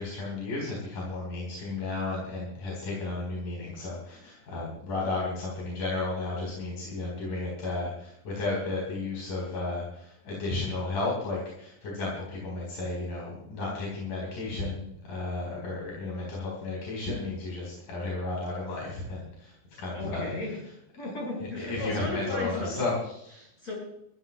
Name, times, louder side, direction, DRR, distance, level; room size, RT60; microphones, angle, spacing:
voice 1, 0.0-20.3 21.4-23.5, left 3 dB, 90° left, -4 dB, 6.1 m, -33 dB
voice 2, 19.9-20.6 21.0-22.7 23.6-23.7, left 2 dB, 50° left, -3 dB, 6.5 m, -34 dB
24.0 x 15.0 x 2.3 m, 0.76 s
omnidirectional pair, 3.6 m